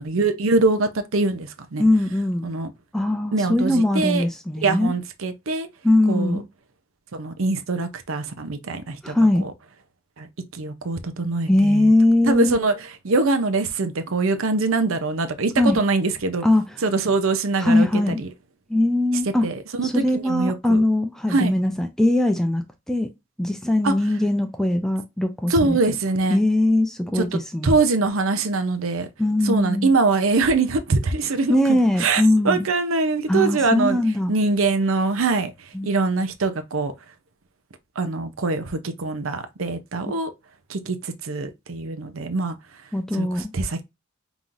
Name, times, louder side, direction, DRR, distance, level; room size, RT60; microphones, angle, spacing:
voice 1, 0.0-1.8 2.4-2.7 3.3-4.2 4.6-5.7 6.1-6.4 7.1-9.5 10.2-10.3 10.5-11.9 12.3-12.8 13.0-16.5 16.8-18.3 19.4-20.8 21.3-21.5 23.8-23.9 25.5-26.4 27.1-29.1 29.4-34.0 34.3-36.9 38.0-40.3 40.7-42.6 43.1-43.8, right 3 dB, 70° right, 0.7 m, -23 dB
voice 2, 1.8-2.5 2.9-4.9 5.8-6.5 9.0-9.5 11.5-12.6 15.6-15.8 16.4-16.6 17.6-18.2 18.7-19.5 19.8-23.1 23.4-26.0 26.3-27.7 29.2-29.9 31.5-32.6 33.3-34.3 35.7-35.9 42.9-43.5, left 1 dB, ahead, 0.4 m, -20 dB
5.5 x 3.0 x 2.5 m
head